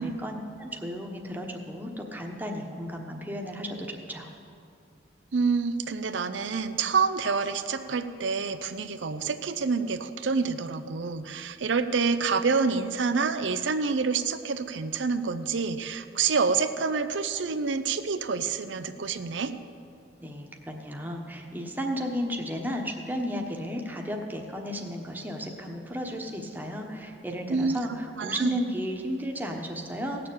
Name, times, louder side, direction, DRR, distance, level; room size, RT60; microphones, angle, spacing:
voice 1, 0.0-4.3 20.2-30.3, equal, 10° right, 1 dB, 1.1 m, -34 dB
voice 2, 5.3-19.5 27.5-27.8 28.2-28.5, right 5 dB, 90° right, 9 dB, 0.6 m, -27 dB
17.0 x 6.8 x 8.6 m, 2.5 s
head